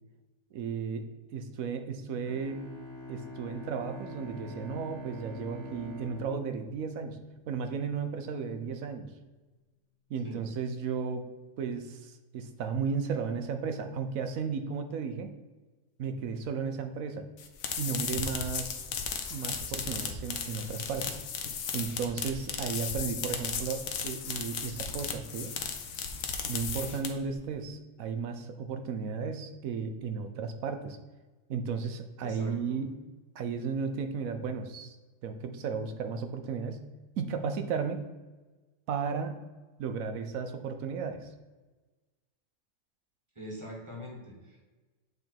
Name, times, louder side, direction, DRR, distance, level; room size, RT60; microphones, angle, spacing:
voice 1, 0.5-1.0 1.3-2.6 3.1-7.2 7.5-9.1 10.1-11.2 11.6-15.3 16.0-17.3 17.8-18.7 19.3-21.2 21.7-25.6 26.5-31.0 31.5-32.9 33.3-35.0 35.2-36.8 37.2-38.0 38.9-39.3 39.8-41.3, right 5 dB, 80° right, 7 dB, 1.1 m, -34 dB
Bowed string instrument, 2.2-7.8, equal, 55° right, 1.3 m, -44 dB
sound 1, 17.4-27.3, left 6 dB, 80° left, 1.2 m, -35 dB
voice 2, 32.2-32.8 43.3-44.6, equal, 20° right, -2 dB, 1.3 m, -43 dB
7.9 x 3.6 x 4.5 m, 1.2 s
omnidirectional pair, 1.4 m